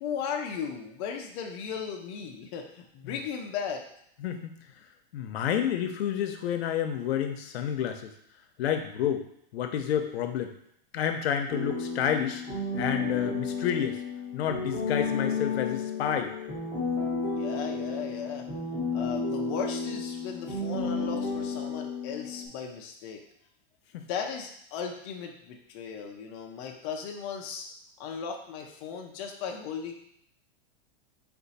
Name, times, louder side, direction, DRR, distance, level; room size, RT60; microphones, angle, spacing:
voice 1, 0.0-3.8 17.3-18.5 18.9-23.2 24.1-27.7 28.0-29.9, left 6 dB, 30° left, 1 dB, 0.4 m, -36 dB
voice 2, 4.2-4.5 5.1-8.1 8.6-9.3 9.5-10.5 10.9-12.4 12.8-14.0 14.3-16.3 23.9-24.1, left 9 dB, 80° left, 6 dB, 0.7 m, -29 dB
sound 1, 11.5-22.5, left 4 dB, 5° right, 1.5 m, -32 dB
4.3 x 2.4 x 4.0 m, 0.71 s
supercardioid pair, 160°, 31 cm